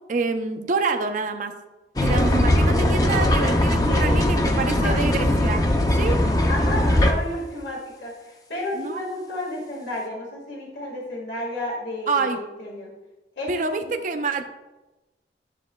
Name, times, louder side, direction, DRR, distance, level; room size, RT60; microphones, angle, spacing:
voice 1, 0.1-1.5 2.0-5.6 5.9-6.2 8.8-9.1 12.1-12.4 13.5-14.6, right 3 dB, 45° right, 5 dB, 0.5 m, -27 dB
sound 1, 2.0-7.1, left 1 dB, 20° left, 0.5 m, -20 dB
voice 2, 3.9-5.1 6.5-12.9 13.4-13.9, left 1 dB, 75° left, -3 dB, 1.7 m, -32 dB
9.9 x 7.2 x 2.2 m, 1.1 s
head